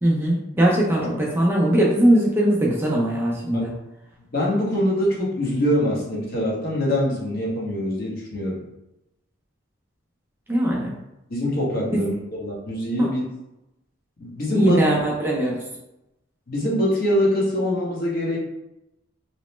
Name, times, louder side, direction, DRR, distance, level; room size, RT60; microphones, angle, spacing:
voice 1, 0.0-3.7 10.5-10.9 11.9-12.0 13.0-13.1 14.5-15.6, right 1 dB, 10° right, -4 dB, 0.4 m, -20 dB
voice 2, 4.3-8.6 11.3-13.2 14.2-14.8 16.5-18.4, equal, 50° left, -5 dB, 0.9 m, -24 dB
2.9 x 2.0 x 3.1 m, 0.92 s
head